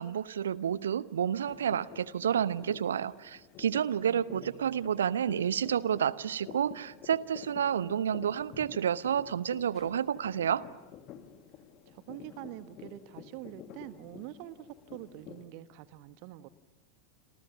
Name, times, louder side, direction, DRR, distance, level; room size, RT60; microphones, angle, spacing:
voice 1, 0.0-10.6, right 8 dB, 65° right, 18 dB, 0.9 m, -30 dB
sound 1, 1.5-15.5, left 9 dB, 40° left, 2.2 m, -50 dB
voice 2, 4.1-4.9 11.9-16.5, right 13 dB, 45° right, 13 dB, 1.4 m, -46 dB
28.0 x 28.0 x 6.9 m, 1.1 s
figure-of-eight pair, 90°, 0 cm